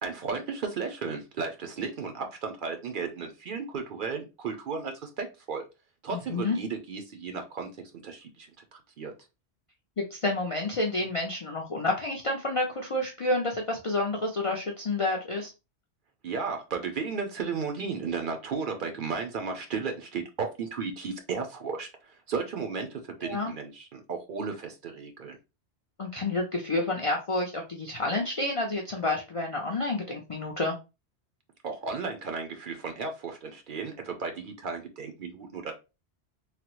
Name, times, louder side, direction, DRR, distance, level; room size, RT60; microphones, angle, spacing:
voice 1, 0.0-5.6 6.0-9.1 16.2-25.4 31.6-35.7, right 5 dB, 55° right, 4 dB, 0.7 m, -34 dB
voice 2, 6.1-6.6 10.1-15.5 23.2-23.5 26.0-30.8, left 2 dB, 50° left, 0 dB, 0.4 m, -29 dB
3.2 x 2.0 x 2.9 m, 0.27 s
omnidirectional pair, 1.1 m